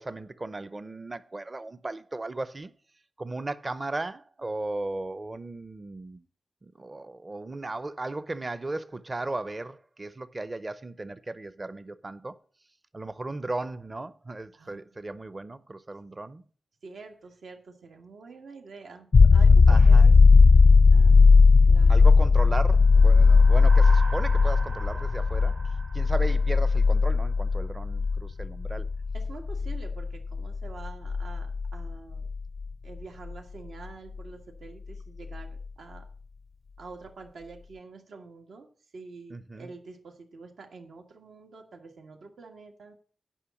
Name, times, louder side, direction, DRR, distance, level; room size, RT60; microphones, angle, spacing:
voice 1, 0.0-2.7 3.2-6.2 6.6-12.3 12.9-16.4 19.7-20.1 21.9-25.6 25.9-28.9 39.3-39.7, right 2 dB, 25° right, 0.6 m, -36 dB
voice 2, 14.5-14.8 16.8-20.1 20.9-22.1 29.1-32.3 32.8-36.0 36.8-38.7 38.9-42.9, right 4 dB, 85° right, 1.7 m, -47 dB
sound 1, 19.1-32.6 35.4-35.5, left 4 dB, 45° left, 0.4 m, -18 dB
sound 2, 22.8-27.3, right 3 dB, 55° right, 1.2 m, -42 dB
10.0 x 5.4 x 7.1 m
wide cardioid pair, 155°, 0 cm